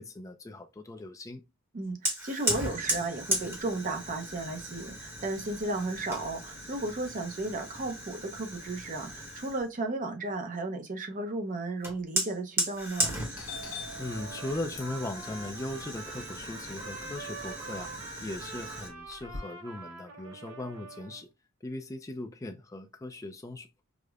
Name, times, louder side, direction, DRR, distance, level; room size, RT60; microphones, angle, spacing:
voice 1, 0.0-1.4 14.0-21.3 21.6-23.8, left 2 dB, 15° left, 0.3 m, -39 dB
voice 2, 1.7-13.2, right 2 dB, 35° right, 0.6 m, -34 dB
Fire, 2.0-9.7 11.8-18.9, right 1 dB, 10° right, 0.9 m, -36 dB
Doorbell, 12.8-13.1 13.3-17.5 17.9-19.4, left 3 dB, 65° left, 0.8 m, -45 dB
Trumpet, 14.1-21.2, right 3 dB, 75° right, 0.7 m, -45 dB
4.9 x 2.1 x 2.3 m
head